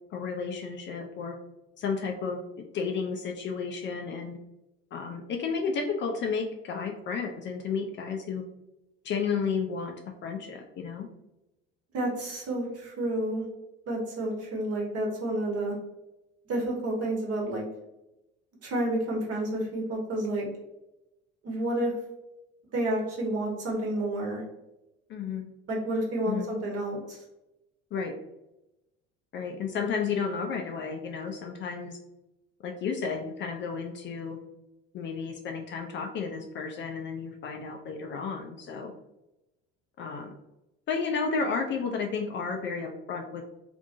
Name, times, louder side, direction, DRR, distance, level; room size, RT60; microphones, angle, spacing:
voice 1, 0.1-1.4 1.8-4.4 4.9-8.4 9.0-9.9 10.2-11.1 25.1-25.5 26.3-26.5 27.9-28.1 29.3-32.0 32.6-34.4 34.9-38.9 40.0-40.4 40.9-43.4, left 5 dB, 35° left, 3 dB, 0.4 m, -32 dB
voice 2, 11.9-13.4 13.9-15.7 16.5-17.6 18.6-20.5 21.4-21.9 22.7-24.4 25.7-27.2, right 1 dB, 45° right, -1 dB, 1.1 m, -30 dB
2.7 x 2.5 x 2.6 m, 0.93 s
hypercardioid pair, 65°, 34 cm